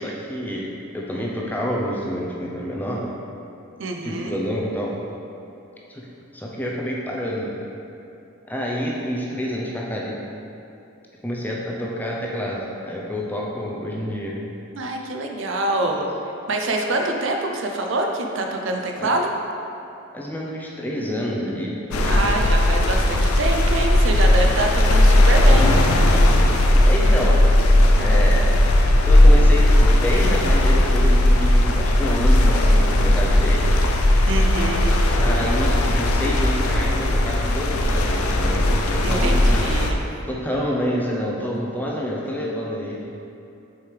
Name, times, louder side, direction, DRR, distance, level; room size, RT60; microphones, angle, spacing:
voice 1, 0.0-3.1 4.0-4.9 5.9-6.1 6.3-7.5 8.5-10.2 11.2-14.4 19.0-19.1 20.1-22.2 26.8-27.5 28.0-28.5 29.0-33.8 35.2-39.6 40.2-43.1, equal, 10° left, -3 dB, 0.5 m, -28 dB
voice 2, 3.8-4.3 14.8-16.1 16.5-19.3 22.0-25.8 34.3-35.0 39.0-40.0, right 2 dB, 60° right, 2 dB, 0.5 m, -25 dB
sound 1, 21.9-39.9, left 1 dB, 90° left, 0.5 m, -17 dB
6.7 x 4.6 x 3.3 m, 2.8 s
head